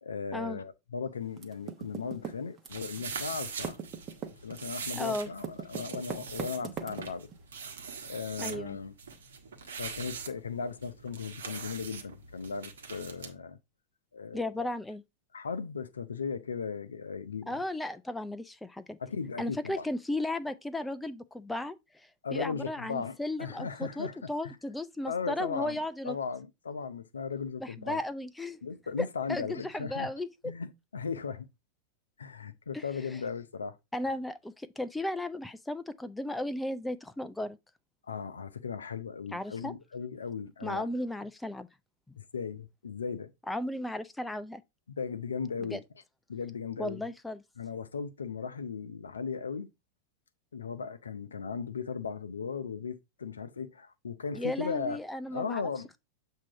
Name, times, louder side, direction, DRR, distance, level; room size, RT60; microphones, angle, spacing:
voice 1, 0.0-3.8 4.2-7.3 8.0-8.9 9.7-13.6 14.1-14.7 15.3-17.6 19.0-19.8 22.2-24.6 25.1-25.8 26.0-28.0 28.6-30.1 30.4-31.5 32.2-33.8 38.1-40.9 42.2-43.3 44.9-45.8 46.3-47.0 47.6-49.7 50.5-55.0 55.3-55.9, left 5 dB, 70° left, 0.6 m, -37 dB
Typing, 1.4-3.1 3.3-7.4, right 7 dB, 25° right, 1.0 m, -39 dB
sound 1, 2.7-13.3, right 6 dB, 65° right, 1.1 m, -42 dB
voice 2, 4.9-5.3 8.4-8.8 14.3-15.0 17.5-19.0 19.4-26.2 27.6-28.6 29.0-30.3 32.7-32.8 33.9-37.6 39.3-39.7 40.6-41.7 43.5-44.6 45.6-45.8 46.8-47.4 54.3-55.6, left 1 dB, 5° left, 0.4 m, -35 dB
7.4 x 2.8 x 4.7 m
figure-of-eight pair, 90°, 0 cm